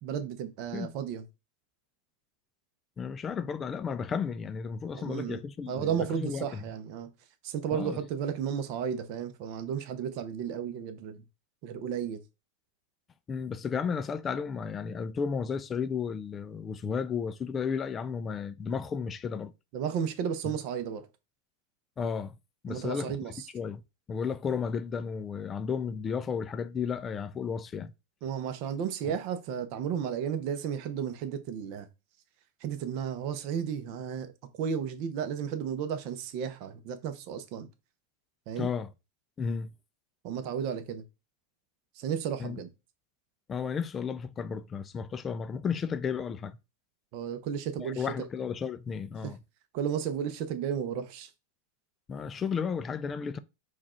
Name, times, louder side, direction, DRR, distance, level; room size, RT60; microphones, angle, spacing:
voice 1, 0.0-1.2 4.9-7.1 7.4-11.2 11.6-12.2 19.7-21.1 22.7-23.5 28.2-31.9 32.6-34.3 34.6-37.7 38.5-38.7 40.2-41.0 42.0-42.7 47.1-48.3 49.2-49.3 49.7-51.3, right 8 dB, 50° right, 0.8 m, -33 dB
voice 2, 3.0-6.6 7.7-8.0 13.3-19.5 22.0-22.3 22.6-23.1 23.5-23.8 24.1-27.9 38.6-38.9 39.4-39.7 42.4-42.6 43.5-46.6 47.8-49.4 52.1-53.4, left 6 dB, 20° left, 0.4 m, -33 dB
4.6 x 2.4 x 4.3 m
hypercardioid pair, 125°, 0 cm